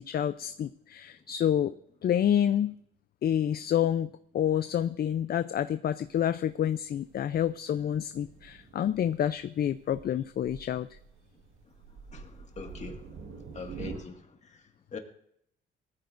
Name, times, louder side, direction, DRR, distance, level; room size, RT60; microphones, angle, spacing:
voice 1, 0.0-1.7 2.0-2.7 3.2-10.9, left 10 dB, 50° left, 13 dB, 0.5 m, -28 dB
Thunder, 6.0-14.0, right 5 dB, 85° right, 1.8 m, -47 dB
voice 2, 12.1-13.2 13.5-15.0, left 4 dB, 35° left, 4 dB, 1.9 m, -43 dB
19.0 x 14.0 x 2.6 m, 0.72 s
cardioid pair, 90°, 20 cm